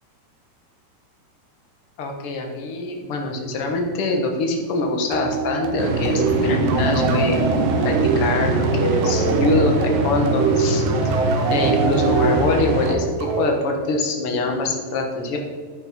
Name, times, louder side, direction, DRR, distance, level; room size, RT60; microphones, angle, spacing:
voice 1, 2.0-7.5 7.8-10.8 11.5-13.0 13.3-15.4, left 3 dB, 60° left, 2 dB, 1.5 m, -24 dB
sound 1, 5.1-14.4, right 4 dB, 80° right, 3.6 m, -25 dB
sound 2, 5.8-13.0, right 3 dB, 65° right, 2.5 m, -23 dB
11.0 x 9.6 x 4.5 m, 1.5 s
omnidirectional pair, 4.8 m